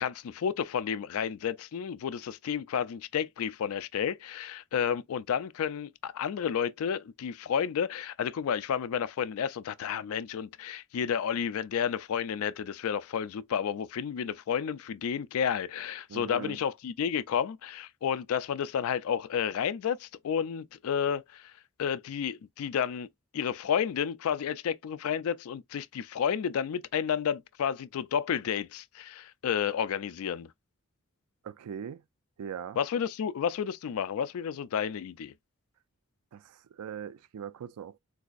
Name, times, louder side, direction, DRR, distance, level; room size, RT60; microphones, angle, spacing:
voice 1, 0.0-21.5 21.8-23.1 23.3-30.5 32.8-35.3, left 8 dB, 70° left, 0.3 m, -31 dB
voice 2, 16.1-16.6 31.4-32.0 32.4-32.8 36.3-38.0, right 8 dB, 85° right, 0.4 m, -40 dB
3.9 x 2.5 x 2.3 m
head